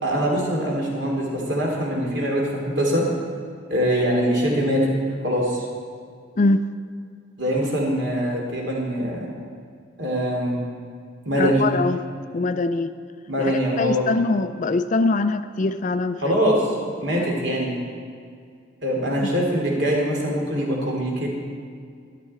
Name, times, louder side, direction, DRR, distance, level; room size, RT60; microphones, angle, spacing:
voice 1, 0.0-3.1 3.7-4.9 5.2-5.6 7.4-9.3 10.0-10.6 11.2-11.6 13.3-14.1 16.2-17.7 18.8-21.3, equal, 65° right, -2 dB, 3.0 m, -23 dB
voice 2, 6.4-6.7 11.4-12.0 12.3-13.0 13.4-16.4 17.2-17.3 19.2-19.3, left 3 dB, 40° left, 11 dB, 0.4 m, -23 dB
13.0 x 11.5 x 4.3 m, 2.2 s
head